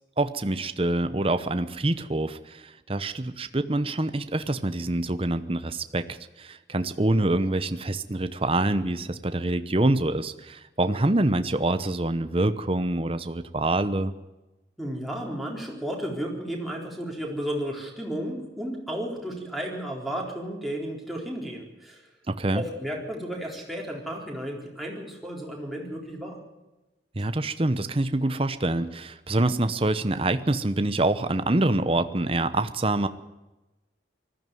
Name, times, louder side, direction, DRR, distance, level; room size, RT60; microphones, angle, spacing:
voice 1, 0.2-14.1 22.3-22.6 27.2-33.1, right 2 dB, 30° right, 11 dB, 0.9 m, -26 dB
voice 2, 14.8-22.1 22.5-26.4, equal, ahead, -2 dB, 4.0 m, -33 dB
19.5 x 14.5 x 9.2 m, 1.0 s
head